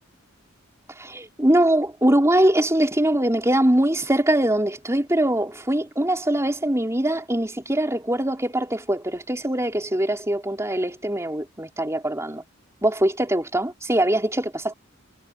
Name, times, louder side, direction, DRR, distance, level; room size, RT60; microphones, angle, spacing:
voice 1, 1.0-12.4 12.8-14.7, right 1 dB, 15° right, 4.5 m, -22 dB
head